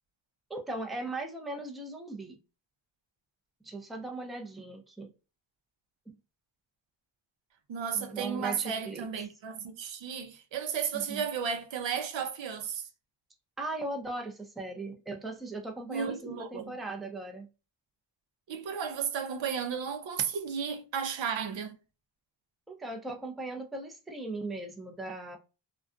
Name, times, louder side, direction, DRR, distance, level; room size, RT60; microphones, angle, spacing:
voice 1, 0.5-2.4 3.6-5.1 6.1-6.2 7.9-9.1 10.9-11.2 13.6-17.5 22.7-25.4, right 2 dB, ahead, 0.4 m, -38 dB
voice 2, 7.7-12.9 15.9-16.8 18.5-21.7, right 7 dB, 75° right, 0.6 m, -34 dB
2.4 x 2.2 x 2.4 m
cardioid pair, 80°, 45 cm